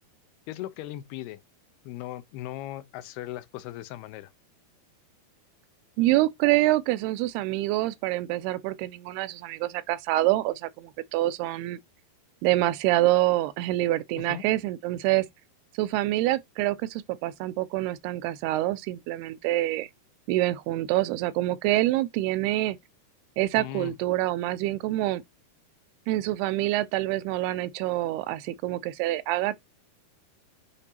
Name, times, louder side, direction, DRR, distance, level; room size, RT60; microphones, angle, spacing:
voice 1, 0.5-1.4 1.9-4.3 14.3-14.4 23.6-23.9, left 14 dB, 80° left, 2.7 m, -38 dB
voice 2, 6.0-11.8 12.4-15.3 15.7-19.9 20.3-22.8 23.4-25.2 26.1-29.6, right 16 dB, 80° right, 2.5 m, -26 dB
9.8 x 5.2 x 2.8 m
omnidirectional pair, 4.7 m